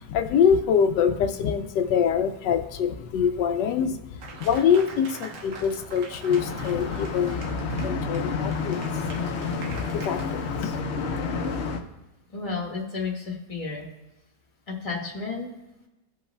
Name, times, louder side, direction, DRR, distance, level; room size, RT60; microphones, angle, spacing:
voice 1, 0.0-7.4 7.8-10.8, left 7 dB, 85° left, 7 dB, 1.2 m, -25 dB
Applause, 4.2-10.2, right 4 dB, 85° right, 1.6 m, -43 dB
sound 1, 6.3-11.8, left 4 dB, 55° left, 0.8 m, -30 dB
voice 2, 12.3-13.8 14.7-15.5, left 4 dB, 20° left, -1 dB, 1.5 m, -32 dB
16.0 x 5.4 x 2.2 m, 0.96 s
omnidirectional pair, 1.8 m